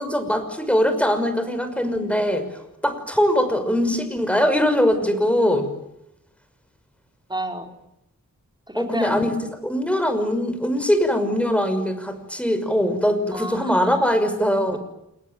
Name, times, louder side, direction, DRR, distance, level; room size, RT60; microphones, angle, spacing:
voice 1, 0.0-2.5 2.8-5.7 8.8-9.4 9.6-14.8, equal, 5° left, 9 dB, 5.9 m, -21 dB
voice 2, 7.3-7.7 8.7-9.2 13.3-14.2 14.7-14.8, right 1 dB, 15° right, 4 dB, 4.7 m, -32 dB
30.0 x 20.0 x 9.1 m, 0.86 s
wide cardioid pair, 75°, 33 cm